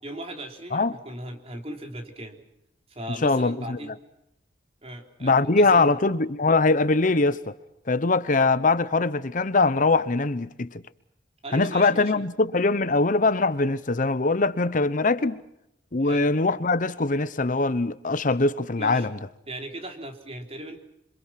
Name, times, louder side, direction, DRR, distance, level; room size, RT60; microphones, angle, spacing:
voice 1, 0.0-2.4 2.9-3.9 4.8-5.9 11.4-12.2 16.0-16.3 18.8-19.1 19.5-20.8, right 1 dB, 35° right, 3.7 m, -38 dB
voice 2, 3.2-3.8 5.2-7.5 7.9-10.8 11.5-15.4 15.9-19.2, left 3 dB, 50° left, 0.9 m, -22 dB
27.5 x 25.5 x 5.9 m
head